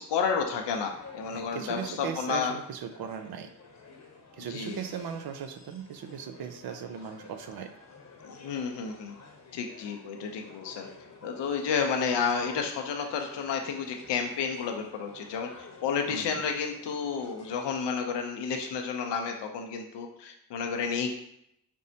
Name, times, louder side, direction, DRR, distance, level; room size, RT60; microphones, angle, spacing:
voice 1, 0.0-2.5 4.5-4.8 8.2-9.1 9.5-10.9 11.2-21.1, left 6 dB, 65° left, 4 dB, 0.7 m, -31 dB
sound 1, 0.6-17.8, left 3 dB, 40° left, 1.0 m, -51 dB
voice 2, 1.3-3.5 4.3-7.7 16.1-16.4, right 7 dB, 55° right, 7 dB, 0.6 m, -38 dB
5.2 x 2.0 x 2.7 m, 0.75 s
hypercardioid pair, 45°, 45 cm